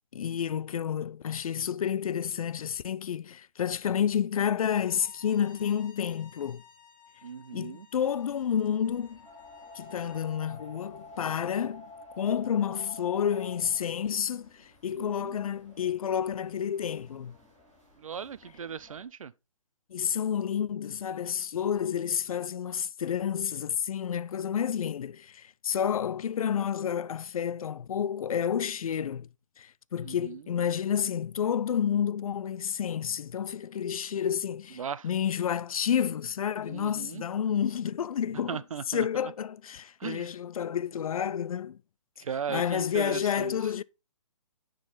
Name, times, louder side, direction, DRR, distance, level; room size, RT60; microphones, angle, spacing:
voice 1, 0.1-6.6 7.5-9.2 9.8-11.9 12.1-17.3 19.9-29.3 29.6-38.6 38.9-41.8 42.5-43.8, left 8 dB, 85° left, 0.4 m, -30 dB
Bowed string instrument, 4.7-10.3, left 7 dB, 40° left, 1.0 m, -56 dB
voice 2, 7.2-7.9 15.0-15.4 18.0-19.3 30.0-30.4 34.8-35.1 36.6-37.2 38.5-39.1 40.0-40.3 42.2-43.6, right 7 dB, 75° right, 0.5 m, -37 dB
sound 1, 7.9-19.0, left 2 dB, 5° right, 0.3 m, -51 dB
9.1 x 3.9 x 3.9 m
hypercardioid pair, 175°, 18 cm